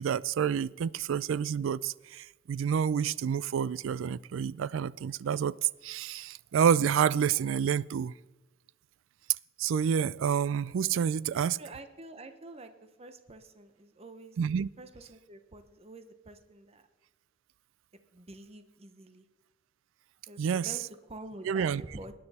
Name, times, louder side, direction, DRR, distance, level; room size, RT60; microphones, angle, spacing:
voice 1, 0.0-5.5 5.8-8.1 9.6-11.6 14.4-14.7 20.4-20.7 21.4-21.8, right 7 dB, 70° right, 0.3 m, -28 dB
voice 2, 11.3-14.4 14.8-16.8 18.1-19.3 20.3-20.8 21.1-22.1, right 2 dB, 30° right, 0.8 m, -47 dB
19.0 x 10.0 x 4.2 m
head